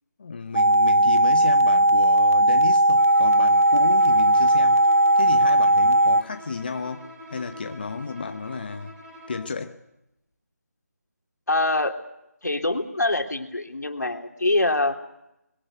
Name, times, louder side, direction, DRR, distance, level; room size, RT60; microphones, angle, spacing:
voice 1, 0.2-4.9 5.2-8.9 9.3-9.8, left 4 dB, 35° left, 1.0 m, -33 dB
sound 1, 0.5-6.2, right 1 dB, 60° right, 0.9 m, -18 dB
Bowed string instrument, 2.9-9.6, equal, 5° right, 7.9 m, -44 dB
voice 2, 11.5-12.0 12.4-15.0, left 2 dB, 90° left, 3.3 m, -24 dB
22.0 x 18.5 x 9.3 m
figure-of-eight pair, 170°, 9 cm